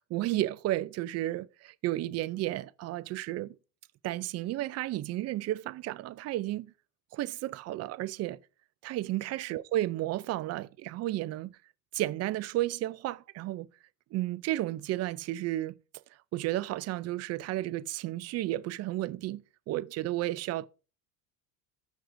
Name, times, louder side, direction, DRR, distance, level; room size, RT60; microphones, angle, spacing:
voice 1, 0.0-3.5 4.0-6.7 7.1-8.4 8.8-11.5 11.9-13.7 14.1-15.7 16.3-20.7, right 15 dB, 35° right, 0.4 m, -32 dB
14.0 x 6.4 x 2.6 m
supercardioid pair, 125°, 47 cm